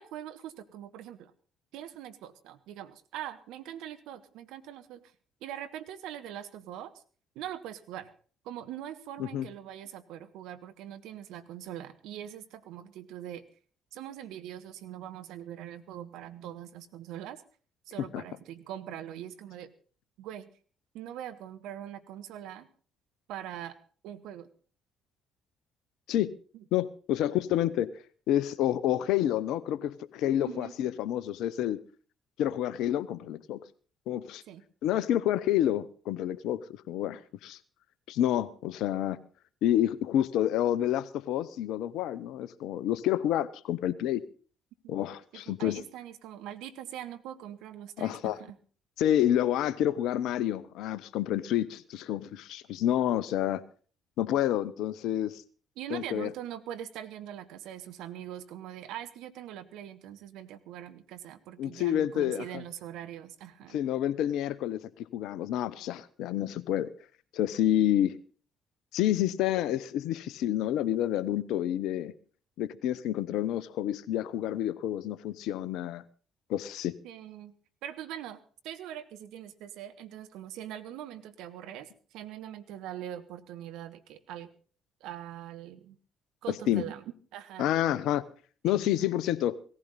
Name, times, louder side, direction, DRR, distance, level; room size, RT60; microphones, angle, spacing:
voice 1, 0.0-1.3 1.7-5.1 5.4-6.9 7.3-8.1 8.4-13.4 13.9-17.4 17.9-19.7 20.2-20.5 20.9-22.7 23.3-23.8 24.0-24.5 26.5-26.6 30.4-30.7 34.5-34.6 44.8-44.9 45.5-48.6 55.8-63.8 77.0-77.5 77.8-84.5 85.0-86.0 86.4-87.0 87.3-87.7 88.6-88.9, right 11 dB, 70° right, 1.0 m, -42 dB
voice 2, 26.7-27.9 28.3-31.8 32.4-33.6 34.1-34.4 34.8-37.6 38.1-39.2 39.6-44.2 44.9-45.8 48.0-48.4 49.0-53.6 54.2-55.4 55.9-56.3 61.6-62.6 63.7-66.9 67.3-68.2 68.9-72.1 72.6-76.0 76.5-76.9 86.7-86.9 87.6-88.2 88.6-89.6, left 12 dB, 65° left, 0.7 m, -29 dB
17.5 x 15.0 x 4.1 m
hypercardioid pair, 50°, 0 cm